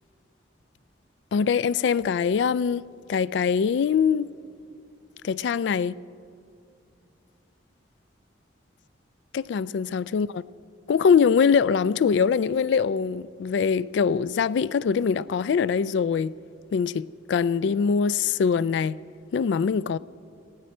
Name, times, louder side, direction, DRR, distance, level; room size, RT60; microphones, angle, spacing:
voice 1, 1.3-4.3 5.2-6.0 9.3-10.4 10.9-16.3 16.7-19.0 19.3-20.0, left 6 dB, 70° left, 0.3 m, -23 dB
18.5 x 16.0 x 4.4 m
head